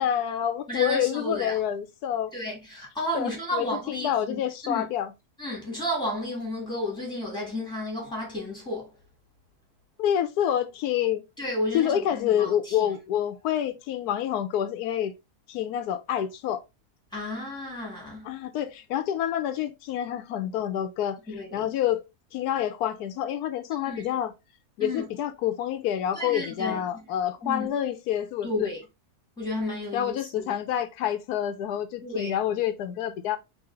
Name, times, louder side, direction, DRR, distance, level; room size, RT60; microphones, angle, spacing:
voice 1, 0.0-2.3 3.1-5.1 10.0-11.2 11.7-15.1 15.5-16.6 18.2-22.0 22.3-24.3 24.8-28.7 29.9-33.4, left 10 dB, 85° left, 1.1 m, -28 dB
voice 2, 0.7-1.6 2.3-4.9 5.4-8.9 11.4-12.9 17.1-18.2 21.3-21.7 23.8-24.1 24.8-25.0 26.1-26.8 27.4-27.7 28.4-28.8 29.4-30.5 32.0-32.4, left 1 dB, 5° left, 2.2 m, -32 dB
4.0 x 3.2 x 3.7 m
omnidirectional pair, 1.6 m